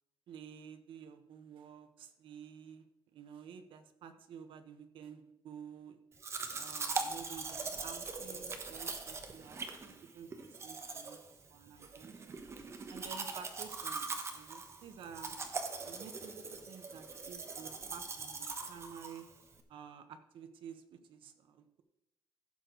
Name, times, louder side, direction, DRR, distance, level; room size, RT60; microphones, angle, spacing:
voice 1, 0.3-2.8 3.1-6.0 6.5-11.2 11.5-12.4 12.9-15.4 15.8-19.3 19.7-21.8, right 7 dB, 75° right, 8 dB, 1.1 m, -51 dB
Domestic sounds home sounds, 6.2-19.6, right 4 dB, 30° right, 1.1 m, -42 dB
15.5 x 6.7 x 3.9 m, 0.85 s
cardioid pair, 150°, 9 cm